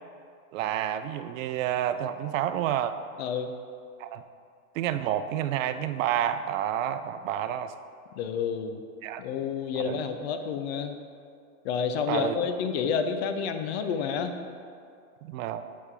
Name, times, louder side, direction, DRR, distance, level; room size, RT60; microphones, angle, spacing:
voice 1, 0.5-2.9 4.0-4.2 4.7-7.7 9.0-9.2 9.7-10.1 12.1-12.4 15.2-15.6, right 11 dB, 65° right, 11 dB, 0.5 m, -29 dB
voice 2, 3.2-3.5 8.2-8.8 9.2-10.9 11.6-14.3, left 6 dB, 50° left, 7 dB, 0.6 m, -29 dB
8.4 x 4.2 x 3.7 m, 2.4 s
hypercardioid pair, 135°, 42 cm